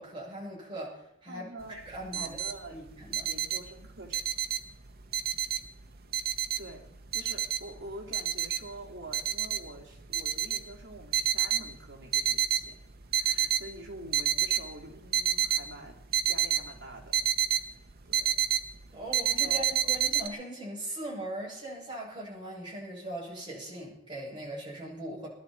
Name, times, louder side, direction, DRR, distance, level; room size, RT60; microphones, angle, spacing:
voice 1, 0.0-1.4 1.7-2.4 2.7-3.3 18.9-25.3, right 1 dB, 25° right, -5 dB, 7.2 m, -40 dB
voice 2, 1.3-1.8 2.1-2.8 3.2-4.2 6.6-6.9 7.1-12.8 13.1-16.0 16.3-17.2 17.6-17.7 18.0-18.4 19.4-19.9, right 2 dB, 65° right, 0 dB, 2.6 m, -46 dB
sound 1, 1.6-1.7 1.9-2.6 2.9-4.7 5.1-5.9 6.1-7.8 8.1-8.7 9.1-9.7 10.1-11.7 12.0-12.7 13.0-13.7 14.0-14.6 15.1-17.6 17.9-18.7 19.1-20.3, right 10 dB, 50° right, 1.0 m, -28 dB
21.5 x 12.0 x 4.5 m, 0.78 s
head